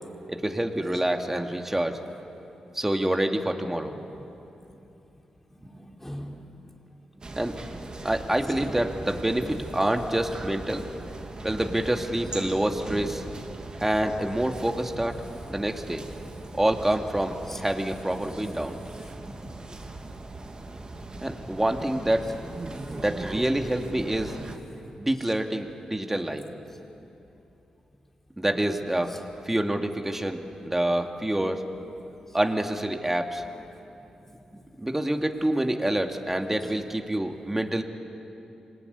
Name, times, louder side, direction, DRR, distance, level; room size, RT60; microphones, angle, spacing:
voice 1, 0.3-2.0 2.7-3.9 7.4-7.6 8.0-10.9 11.4-13.2 13.8-16.1 16.5-18.8 21.2-22.3 23.0-24.4 25.0-26.5 28.4-29.2 29.4-31.6 32.3-33.4 34.8-37.8, right 1 dB, 15° right, 4 dB, 2.4 m, -27 dB
voice 2, 5.5-6.6 17.5-17.6 29.1-29.2 32.3-32.4, equal, 15° left, 1 dB, 4.4 m, -41 dB
sound 1, 7.2-24.6, right 2 dB, 40° right, 2.7 m, -39 dB
26.5 x 19.0 x 9.8 m, 2.9 s
supercardioid pair, 45°, 2 cm